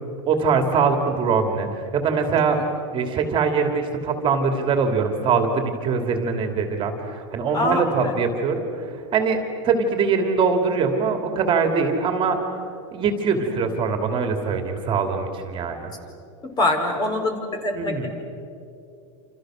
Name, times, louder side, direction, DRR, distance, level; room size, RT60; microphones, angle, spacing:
voice 1, 0.3-2.6 2.9-12.4 12.9-15.9 17.7-18.1, right 5 dB, 30° right, 5 dB, 2.8 m, -22 dB
voice 2, 7.5-8.1 16.4-18.1, left 2 dB, 25° left, 4 dB, 4.7 m, -24 dB
28.5 x 28.0 x 6.4 m, 2.6 s
supercardioid pair, 135°, 16 cm